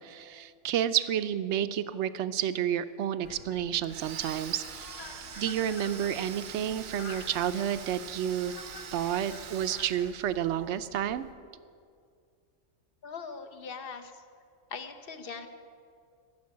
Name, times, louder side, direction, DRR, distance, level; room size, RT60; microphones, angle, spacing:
voice 1, 0.0-8.5 8.9-11.2, right 10 dB, 65° right, 13 dB, 0.9 m, -30 dB
sound 1, 3.2-11.3, left 4 dB, 70° left, 1.2 m, -49 dB
Domestic sounds home sounds, 3.8-10.6, right 7 dB, 85° right, 1.3 m, -44 dB
voice 2, 13.0-14.2 14.7-15.5, left 5 dB, 50° left, 7 dB, 1.1 m, -41 dB
15.0 x 7.1 x 9.6 m, 2.2 s
omnidirectional pair, 1.4 m